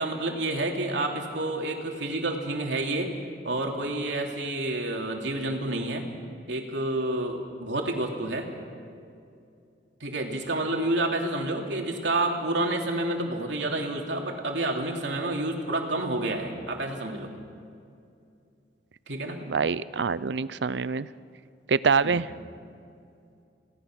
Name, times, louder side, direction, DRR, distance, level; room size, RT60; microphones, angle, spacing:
voice 1, 0.0-3.1 3.4-6.0 6.5-8.5 10.0-17.3 19.1-19.4 22.0-22.2, right 2 dB, 85° right, 1 dB, 3.0 m, -29 dB
voice 2, 19.5-21.1 21.7-22.3, right 5 dB, 70° right, 17 dB, 0.6 m, -25 dB
28.5 x 18.0 x 6.3 m, 2.5 s
head